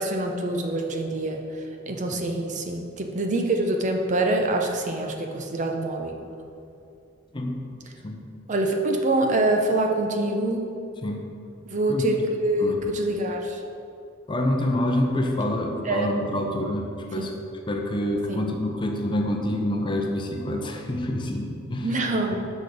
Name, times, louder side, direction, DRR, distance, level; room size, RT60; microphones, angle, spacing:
voice 1, 0.0-6.2 8.5-10.6 11.7-13.6 15.8-16.1 17.2-17.3 18.3-18.4 21.8-22.5, right 2 dB, 40° right, 3 dB, 0.6 m, -25 dB
voice 2, 14.3-17.3 17.7-21.9, left 1 dB, 25° left, 2 dB, 0.6 m, -27 dB
6.2 x 5.3 x 4.9 m, 2.5 s
head